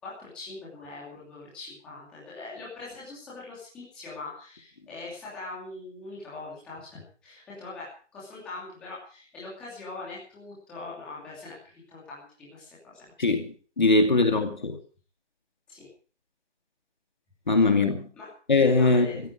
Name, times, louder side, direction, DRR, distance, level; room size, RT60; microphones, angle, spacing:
voice 1, 0.0-7.9 8.1-13.0 14.1-14.2 15.7-15.9 17.6-17.7 18.1-18.3 18.7-19.2, left 3 dB, ahead, 2.7 m, -42 dB
voice 2, 13.8-14.8 17.5-18.1 18.5-19.1, left 3 dB, 40° left, 2.5 m, -21 dB
18.0 x 14.5 x 4.9 m
figure-of-eight pair, 175°, 36 cm